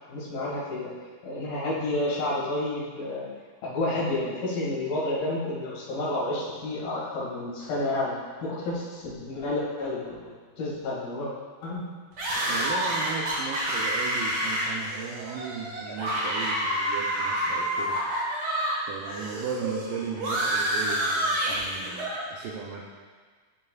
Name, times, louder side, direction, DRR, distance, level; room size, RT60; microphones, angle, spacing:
voice 1, 0.1-0.9 1.2-3.3 3.6-11.3 11.6-11.8, left 2 dB, 70° left, -8 dB, 3.9 m, -30 dB
sound 1, 12.2-18.8 19.0-22.2, right 1 dB, 50° right, 1.8 m, -28 dB
voice 2, 12.5-18.0 18.8-22.8, right 6 dB, 80° right, -2 dB, 2.1 m, -36 dB
12.5 x 5.5 x 2.4 m, 1.5 s
omnidirectional pair, 4.3 m